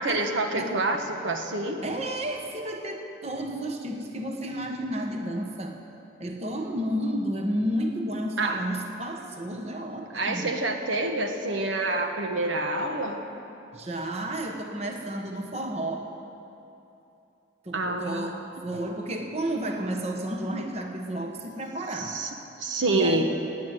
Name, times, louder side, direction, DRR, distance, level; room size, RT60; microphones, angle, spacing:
voice 1, 0.0-1.8 8.4-8.7 10.1-13.2 17.7-18.3 21.9-22.3 22.6-23.2, right 2 dB, 85° right, 4 dB, 1.4 m, -27 dB
voice 2, 1.8-5.8 6.2-10.6 13.7-16.1 17.6-22.2 22.9-23.2, right 1 dB, 35° right, 3 dB, 1.1 m, -32 dB
16.0 x 9.6 x 9.2 m, 2.8 s
head